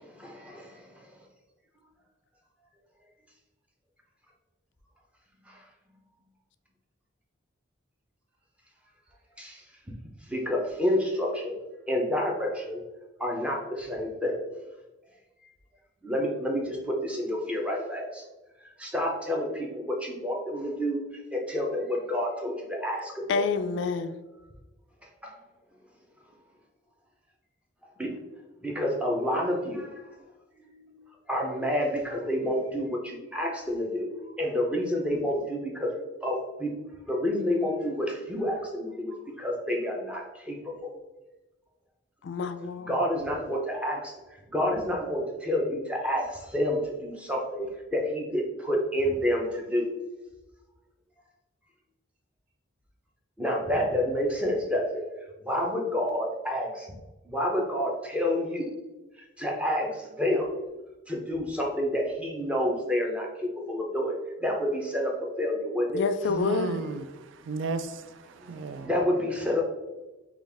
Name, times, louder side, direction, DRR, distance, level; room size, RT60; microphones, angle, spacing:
voice 1, 0.2-0.7 9.4-9.6 10.3-11.5 11.9-12.8 13.2-14.4 16.0-18.2 18.8-19.7 20.0-21.0 21.3-22.5 22.8-23.4 28.0-28.1 28.6-29.9 31.3-34.1 34.4-35.9 36.2-36.7 37.1-40.2 40.5-40.6 42.9-44.1 44.5-46.3 46.5-49.9 53.4-55.0 55.5-56.9 57.3-58.7 59.4-60.5 61.1-63.3 63.7-64.2 64.4-66.0 68.4-69.6, left 1 dB, 5° right, -1 dB, 0.7 m, -28 dB
voice 2, 23.3-24.2 42.2-42.9 65.9-66.8, left 4 dB, 60° left, 10 dB, 0.3 m, -28 dB
voice 3, 66.3-68.9, right 4 dB, 70° right, 10 dB, 0.3 m, -34 dB
5.3 x 2.4 x 3.4 m, 1.1 s
head